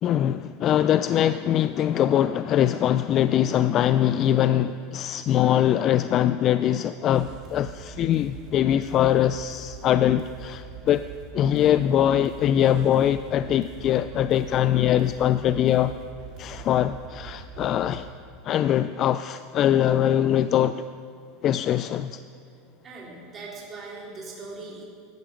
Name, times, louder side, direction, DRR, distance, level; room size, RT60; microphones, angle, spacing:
voice 1, 0.0-11.0 11.3-15.9 16.4-18.1 18.4-20.9 21.4-22.2, left 11 dB, 45° left, 13 dB, 0.4 m, -22 dB
sound 1, 7.1-18.1, right 7 dB, 50° right, 2.2 m, -43 dB
voice 2, 22.8-24.8, right 3 dB, 30° right, -5 dB, 3.9 m, -40 dB
16.0 x 12.0 x 5.1 m, 2.3 s
hypercardioid pair, 105°, 0 cm